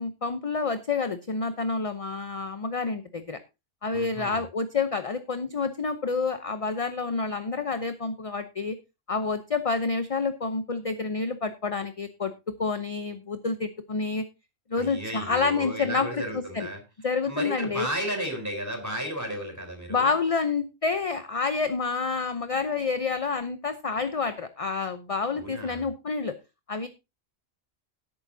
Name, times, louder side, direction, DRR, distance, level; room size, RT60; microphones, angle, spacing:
voice 1, 0.0-3.4 3.8-8.8 9.1-14.2 14.7-16.7 17.0-17.9 19.9-26.3 26.7-26.9, left 4 dB, 35° left, 9 dB, 0.8 m, -28 dB
voice 2, 3.9-4.4 14.8-16.8 17.3-20.2 25.3-25.9, equal, 15° right, 3 dB, 4.0 m, -34 dB
17.0 x 8.6 x 2.7 m, 0.26 s
omnidirectional pair, 1.1 m